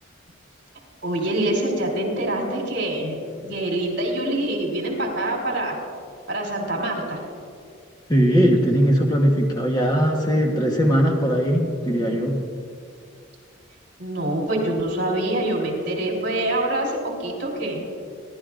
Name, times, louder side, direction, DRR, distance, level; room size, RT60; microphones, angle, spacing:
voice 1, 1.0-3.2 3.5-5.8 6.3-7.3 14.0-17.8, right 1 dB, 55° right, -1 dB, 3.9 m, -25 dB
voice 2, 8.1-12.4, equal, 20° left, 0 dB, 1.2 m, -19 dB
27.5 x 12.0 x 2.5 m, 2.2 s
head